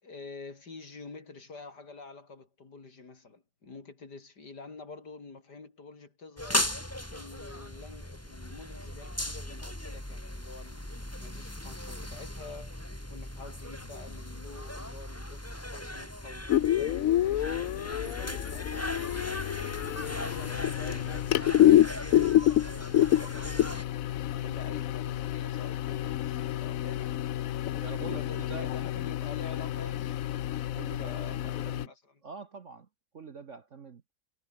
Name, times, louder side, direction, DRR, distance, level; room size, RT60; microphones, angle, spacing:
voice 1, 0.0-19.4 19.9-27.2 28.1-30.7 31.0-32.2, left 3 dB, 55° left, 4.1 m, -48 dB
sound 1, 6.4-23.8, left 1 dB, 5° left, 3.4 m, -38 dB
sound 2, 16.5-31.9, left 12 dB, 70° left, 0.8 m, -28 dB
voice 2, 27.8-28.7 30.7-31.9 32.2-32.9 33.1-34.0, right 5 dB, 45° right, 1.3 m, -44 dB
omnidirectional pair, 2.1 m